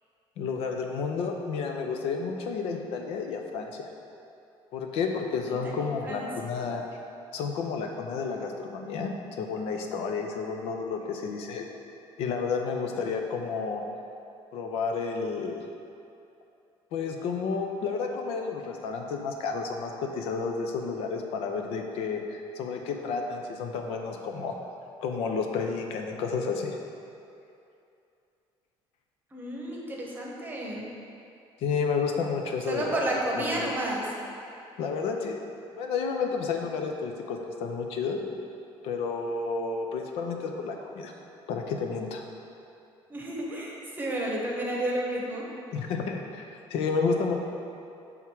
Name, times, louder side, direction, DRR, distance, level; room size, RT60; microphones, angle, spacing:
voice 1, 0.4-3.9 4.7-6.8 7.3-11.7 12.2-13.8 14.5-15.6 16.9-24.5 25.0-26.8 31.6-33.7 34.8-35.4 35.8-38.2 38.8-41.1 41.5-42.3 45.7-46.4 46.7-47.3, left 5 dB, 80° left, 3 dB, 0.6 m, -31 dB
voice 2, 5.5-6.3 6.6-6.7 29.3-30.9 32.7-34.1 43.1-45.4, right 1 dB, 20° right, -3 dB, 1.0 m, -31 dB
7.0 x 3.6 x 4.6 m, 2.7 s
cardioid pair, 150°, 10 cm